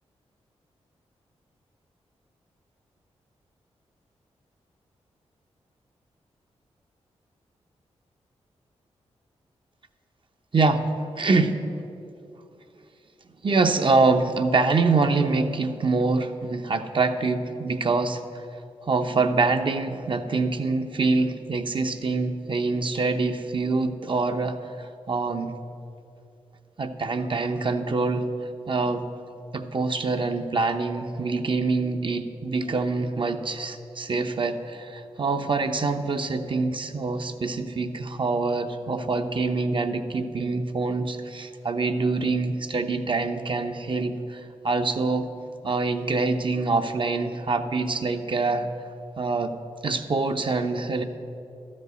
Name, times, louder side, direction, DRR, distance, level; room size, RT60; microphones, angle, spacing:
voice 1, 10.5-10.9 11.2-11.6 13.4-18.2 18.8-25.5 26.8-28.3 28.7-29.1 29.5-45.3 45.6-48.7 49.2-49.6 49.8-51.0, right 3 dB, 45° right, 6 dB, 0.8 m, -25 dB
12.5 x 5.3 x 8.1 m, 2.7 s
cardioid pair, 55°, 12 cm